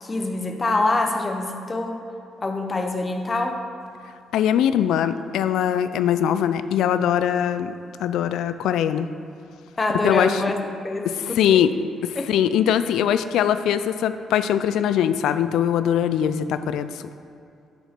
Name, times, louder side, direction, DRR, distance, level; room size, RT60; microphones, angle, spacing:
voice 1, 0.0-2.0 2.4-3.6 9.8-10.5 10.8-11.6 12.2-12.3, left 2 dB, 30° left, 5 dB, 0.9 m, -25 dB
voice 2, 4.3-9.1 10.0-10.4 11.0-11.7 12.0-17.0, left 9 dB, 85° left, 12 dB, 0.3 m, -22 dB
7.4 x 5.3 x 5.1 m, 2.6 s
cardioid pair, 90°, 0 cm